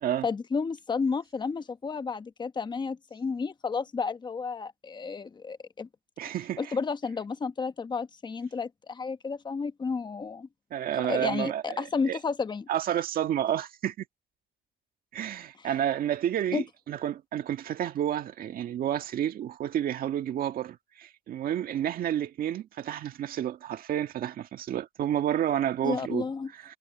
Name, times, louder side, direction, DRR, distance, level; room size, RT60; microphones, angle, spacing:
voice 1, 0.2-5.9 6.6-10.5 11.1-12.7 15.6-15.7 16.5-16.6 25.8-26.5, left 5 dB, 25° left, 1.2 m, -32 dB
voice 2, 6.2-6.6 10.7-12.2 12.7-14.1 15.1-26.2 26.6-26.8, right 10 dB, 60° right, 1.8 m, -30 dB
cardioid pair, 110°, 17 cm